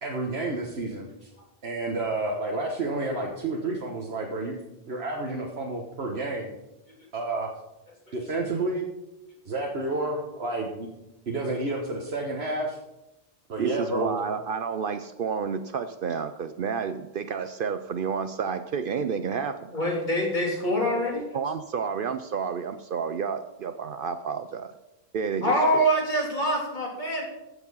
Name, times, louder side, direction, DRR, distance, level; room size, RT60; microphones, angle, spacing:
voice 1, 0.0-1.3 1.6-4.6 4.9-6.5 7.1-7.5 8.1-8.9 9.4-10.9 11.3-12.8 13.5-14.2, right 2 dB, 80° right, -1 dB, 1.6 m, -30 dB
voice 2, 13.6-19.7 21.3-24.7 25.1-25.9, right 6 dB, 60° right, 10 dB, 0.8 m, -30 dB
voice 3, 19.7-21.3 25.4-27.2, equal, 45° left, -2 dB, 3.4 m, -25 dB
15.0 x 7.1 x 5.5 m, 0.95 s
omnidirectional pair, 1.0 m